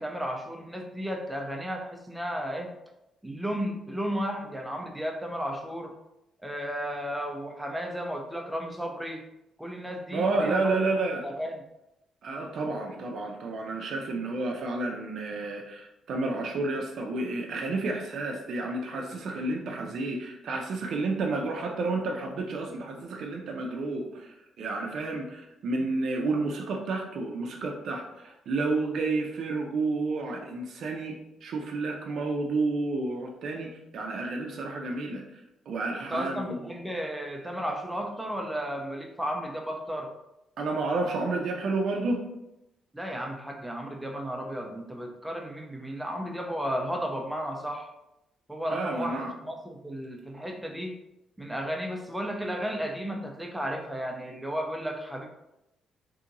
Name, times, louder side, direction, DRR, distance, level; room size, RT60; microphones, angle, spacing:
voice 1, 0.0-2.7 3.2-5.9 6.4-9.2 9.6-10.8 11.2-11.6 36.1-40.1 42.9-47.9 48.5-50.9 51.4-55.3, equal, 5° right, 1 dB, 0.5 m, -33 dB
voice 2, 10.1-11.3 12.2-35.4 35.7-36.8 40.6-42.3 48.7-49.3, right 3 dB, 65° right, 1 dB, 0.4 m, -30 dB
2.8 x 2.6 x 2.5 m, 0.90 s
cardioid pair, 90°, 0 cm